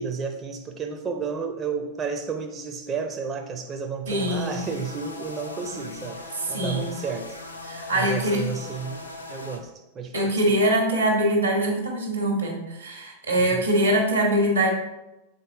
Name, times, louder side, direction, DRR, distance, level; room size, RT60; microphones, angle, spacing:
voice 1, 0.0-6.2 6.5-7.4 7.9-10.3 13.5-13.6, right 5 dB, 25° right, 4 dB, 0.5 m, -32 dB
sound 1, 4.1-9.6, left 2 dB, 85° left, 0.6 m, -39 dB
voice 2, 4.1-4.6 6.5-6.9 7.7-8.4 10.1-14.7, right 1 dB, 80° right, 1 dB, 1.4 m, -23 dB
6.6 x 4.0 x 3.8 m, 0.99 s
figure-of-eight pair, 90°, 0 cm